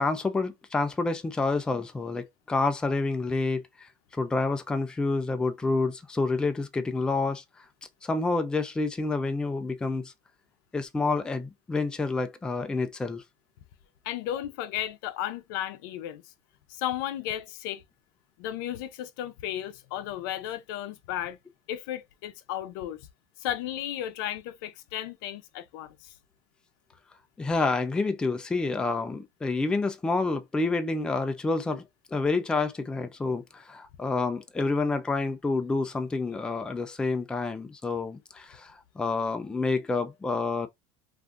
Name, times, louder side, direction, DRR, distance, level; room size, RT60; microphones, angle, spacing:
voice 1, 0.0-7.4 8.0-10.1 10.7-13.2 27.4-31.8 32.1-40.7, left 3 dB, 5° left, 0.3 m, -28 dB
voice 2, 14.0-16.2 16.7-17.8 18.4-21.4 21.7-23.0 23.4-26.1, left 12 dB, 85° left, 0.5 m, -34 dB
2.5 x 2.3 x 3.6 m
cardioid pair, 155°, 11 cm